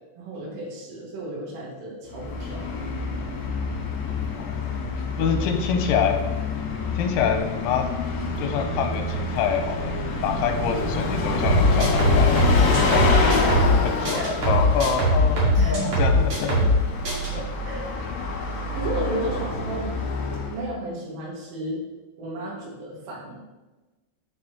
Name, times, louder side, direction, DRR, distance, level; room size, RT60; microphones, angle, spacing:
voice 1, 0.2-2.7 12.6-12.9 14.1-14.3 15.6-15.9 17.6-18.3 18.7-19.9 20.5-21.8 22.2-23.4, right 1 dB, 80° right, -5 dB, 4.6 m, -33 dB
Bus, 2.1-20.7, left 3 dB, 65° left, 3.5 m, -27 dB
voice 2, 5.2-6.2 6.9-7.9 8.4-10.0 10.2-13.1 13.8-16.7 17.3-17.4, left 6 dB, 85° left, 4 dB, 3.1 m, -26 dB
sound 1, 11.4-13.8 14.0-16.8 17.0-17.3, equal, 40° right, 2.2 m, -20 dB
10.0 x 6.2 x 3.1 m, 1.1 s
omnidirectional pair, 5.7 m